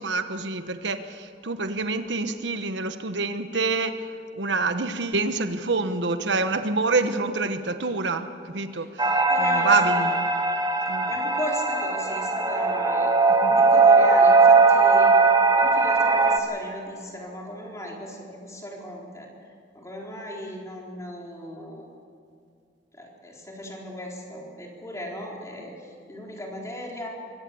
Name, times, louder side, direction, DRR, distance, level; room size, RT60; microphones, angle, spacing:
voice 1, 0.0-3.9 4.4-8.9 9.4-10.3 10.9-11.1 13.5-13.6, right 3 dB, 80° right, 9 dB, 1.1 m, -26 dB
sound 1, 9.0-16.4, right 4 dB, 20° right, 1.2 m, -19 dB
voice 2, 9.3-10.0 11.1-13.2 13.5-15.1 15.6-19.3 19.7-21.9 22.9-27.1, equal, 20° left, -2 dB, 4.1 m, -36 dB
23.5 x 17.5 x 7.0 m, 2.4 s
head